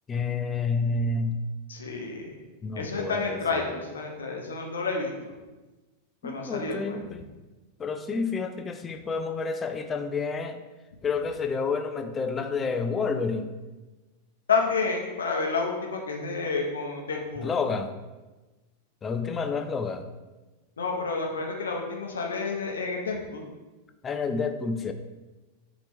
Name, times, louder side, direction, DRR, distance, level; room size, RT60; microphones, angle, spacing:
voice 1, 0.1-1.4 2.6-3.4 6.2-7.3 7.8-10.6 11.0-13.5 17.4-17.9 19.0-20.1 24.0-24.9, left 4 dB, 20° left, 7 dB, 0.3 m, -29 dB
voice 2, 1.7-2.4 2.7-5.3 6.2-7.0 14.5-17.6 20.8-23.5, left 4 dB, 70° left, 1 dB, 0.7 m, -30 dB
4.1 x 2.9 x 3.3 m, 1.2 s
figure-of-eight pair, 90°, 0 cm